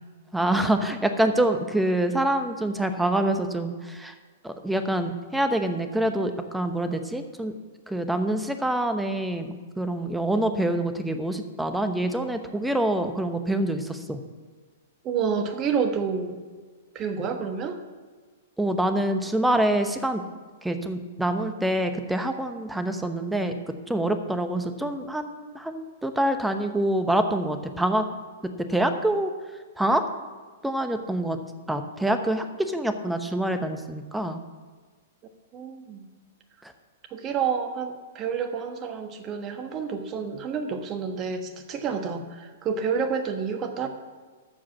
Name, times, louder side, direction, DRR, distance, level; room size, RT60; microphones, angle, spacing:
voice 1, 0.3-4.1 4.4-7.5 7.9-14.2 18.6-20.2 20.6-28.0 28.7-29.3 29.8-30.0 30.6-31.4 31.7-34.4, right 1 dB, 5° right, 8 dB, 0.9 m, -26 dB
voice 2, 15.0-16.4 16.9-17.8 35.5-36.1 37.1-43.9, right 6 dB, 30° right, 6 dB, 1.3 m, -29 dB
13.5 x 5.0 x 7.2 m, 1.4 s
hypercardioid pair, 120°, 0 cm